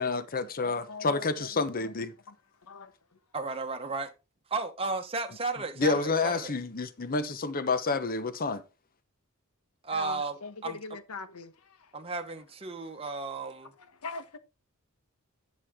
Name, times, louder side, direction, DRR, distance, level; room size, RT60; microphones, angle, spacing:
voice 1, 0.0-2.1 5.8-8.6, left 3 dB, 40° left, 1.0 m, -29 dB
voice 2, 0.6-1.5 1.8-1.9 2.3-2.4 2.6-3.2 9.9-11.9 13.8-14.4, left 4 dB, 75° left, 1.2 m, -42 dB
voice 3, 3.3-4.1 4.5-6.5 9.8-10.4 10.6-10.8 11.9-13.7, right 3 dB, 25° right, 1.0 m, -34 dB
11.0 x 6.4 x 3.7 m
head